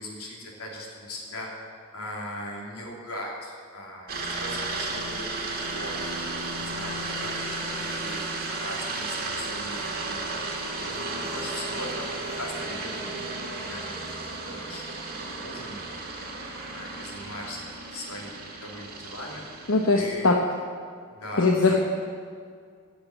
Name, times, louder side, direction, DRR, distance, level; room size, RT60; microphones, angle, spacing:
voice 1, 0.0-8.3 8.5-14.8 15.2-19.6 19.9-20.4 21.1-21.8, left 1 dB, 80° left, -1 dB, 3.2 m, -40 dB
sound 1, 4.1-20.1, right 2 dB, 40° right, 2.2 m, -34 dB
voice 2, 19.7-20.3 21.4-21.8, left 3 dB, 60° left, 1 dB, 1.0 m, -20 dB
16.5 x 6.7 x 9.1 m, 2.1 s
head